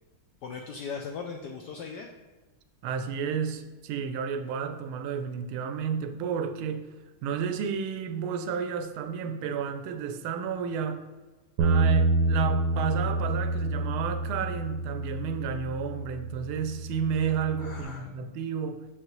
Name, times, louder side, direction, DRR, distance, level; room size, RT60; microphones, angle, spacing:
voice 1, 0.4-2.1 17.6-18.2, left 5 dB, 75° left, 3 dB, 1.0 m, -38 dB
voice 2, 2.8-6.9 7.2-11.1 11.6-18.9, right 7 dB, 90° right, 8 dB, 1.4 m, -32 dB
Bass guitar, 11.6-17.8, right 2 dB, 70° right, 1.0 m, -28 dB
6.6 x 6.5 x 3.0 m, 1.3 s
omnidirectional pair, 2.3 m